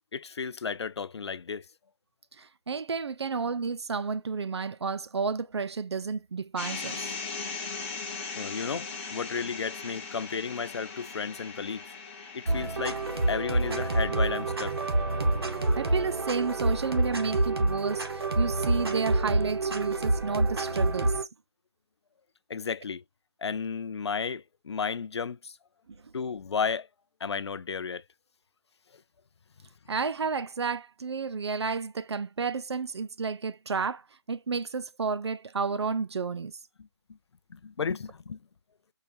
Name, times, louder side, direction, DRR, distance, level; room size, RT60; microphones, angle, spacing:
voice 1, 0.1-1.6 8.3-11.8 12.3-13.0 13.3-14.8 22.5-23.0 23.4-25.6 26.1-26.9 27.2-28.0 36.8-36.9 37.5-38.4, left 6 dB, 90° left, 0.4 m, -33 dB
voice 2, 2.4-7.0 15.7-21.2 26.0-26.1 29.9-34.0 34.3-36.6, right 5 dB, 85° right, 0.5 m, -31 dB
sound 1, 6.6-18.7, left 4 dB, 25° left, 1.0 m, -41 dB
sound 2, 12.5-21.2, right 2 dB, 70° right, 1.1 m, -27 dB
sound 3, 13.6-19.1 19.5-19.6 20.1-20.2, right 3 dB, 30° right, 1.6 m, -44 dB
4.7 x 2.3 x 2.7 m
hypercardioid pair, 165°, 14 cm